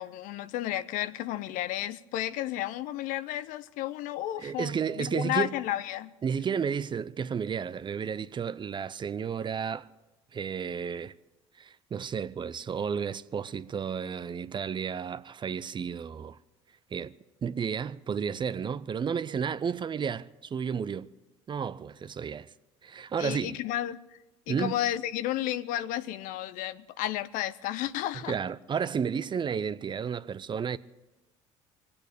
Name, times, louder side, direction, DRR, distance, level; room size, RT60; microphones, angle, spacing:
voice 1, 0.0-6.1 23.2-24.0 24.5-28.3, left 13 dB, 65° left, 0.7 m, -32 dB
voice 2, 4.4-5.5 6.2-9.9 10.3-11.2 11.6-16.4 16.9-17.1 17.4-21.1 21.5-22.5 22.8-23.6 24.5-24.8 28.3-30.8, right 7 dB, 30° right, 0.6 m, -32 dB
23.5 x 8.7 x 6.7 m
hypercardioid pair, 65°, 15 cm